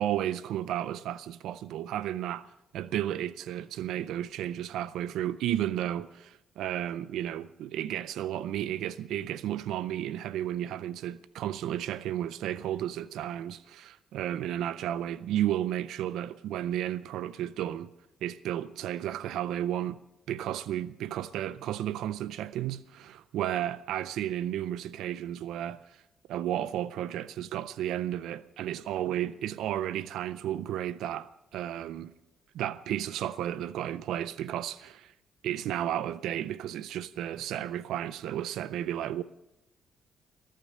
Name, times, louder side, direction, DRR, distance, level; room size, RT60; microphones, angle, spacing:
voice 1, 0.0-2.5 2.7-17.9 18.2-20.0 20.3-25.8 26.3-32.1 32.5-35.1 35.4-39.2, right 11 dB, 85° right, 0.5 m, -33 dB
20.0 x 9.2 x 6.5 m
cardioid pair, 90°, 0 cm